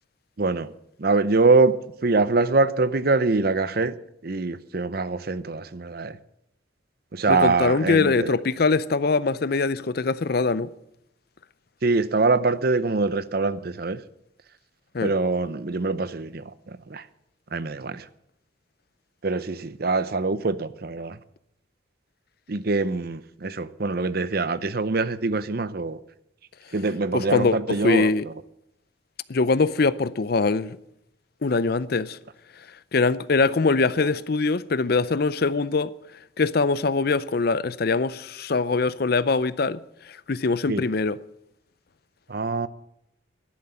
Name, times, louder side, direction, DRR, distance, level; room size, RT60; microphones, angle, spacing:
voice 1, 0.4-0.7 1.0-1.8 2.0-4.0 4.2-6.2 7.1-8.4 11.8-14.0 15.0-17.0 17.5-18.1 19.2-21.2 22.5-26.0 26.7-28.3 40.7-40.8 42.3-42.7, right 3 dB, 50° right, 0.7 m, -24 dB
voice 2, 7.3-10.7 14.9-15.1 27.1-28.2 29.3-30.8 31.4-32.2 32.9-35.9 36.4-39.8 40.1-41.2, left 4 dB, 50° left, 0.5 m, -23 dB
12.0 x 11.0 x 8.8 m
head